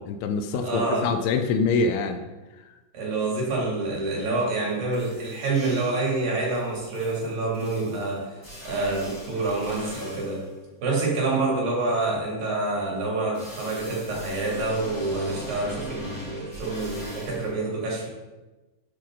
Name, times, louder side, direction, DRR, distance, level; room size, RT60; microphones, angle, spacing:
voice 1, 0.0-2.2, left 4 dB, 80° left, 7 dB, 3.0 m, -25 dB
voice 2, 0.5-1.1 2.9-8.3 8.6-10.4 10.8-18.1, right 2 dB, 55° right, -4 dB, 4.0 m, -27 dB
sound 1, 4.6-4.7 4.9-6.1 6.5-10.5 13.3-17.5, equal, 5° left, 2.8 m, -41 dB
12.5 x 8.5 x 3.9 m, 1.2 s
omnidirectional pair, 5.4 m